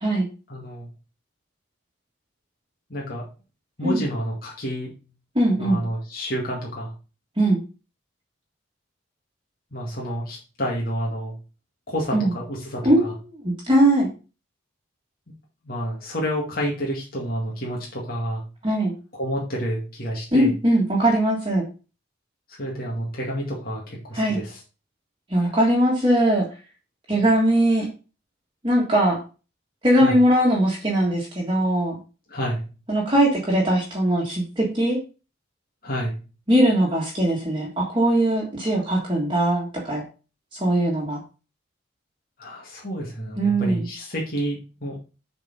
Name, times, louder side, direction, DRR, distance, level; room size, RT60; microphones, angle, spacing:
voice 1, 0.5-0.9 2.9-3.3 3.8-4.9 5.6-6.9 9.7-11.3 11.9-13.1 15.6-18.4 19.1-20.5 22.5-24.6 25.4-25.5 27.1-27.2 30.0-30.2 32.3-32.6 35.8-36.2 42.4-45.0, equal, 45° left, -3 dB, 2.0 m, -29 dB
voice 2, 5.3-5.8 7.4-7.6 12.1-12.3 12.8-14.1 18.6-18.9 20.3-21.6 24.1-24.4 25.3-26.4 27.1-27.9 28.6-29.2 29.8-32.0 32.9-35.0 36.5-40.0 40.6-41.2 43.4-43.8, right 1 dB, 25° right, -3 dB, 1.6 m, -20 dB
7.0 x 4.2 x 5.4 m, 0.33 s
head